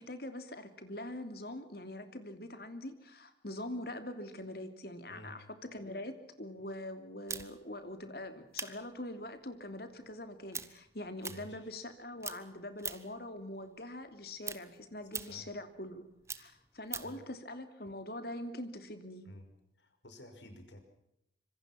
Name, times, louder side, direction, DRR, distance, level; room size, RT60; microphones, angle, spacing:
voice 1, 0.0-16.0 16.4-19.3, left 1 dB, 55° left, 9 dB, 3.0 m, -43 dB
voice 2, 5.1-5.4 11.3-11.7 15.3-15.5 17.0-17.2 19.2-19.5 19.8-20.8, left 1 dB, 80° left, 7 dB, 5.6 m, -52 dB
sound 1, 7.3-11.9 12.2-13.2 13.6-17.2, right 6 dB, 15° right, 1.2 m, -44 dB
26.0 x 24.5 x 6.0 m, 0.80 s
head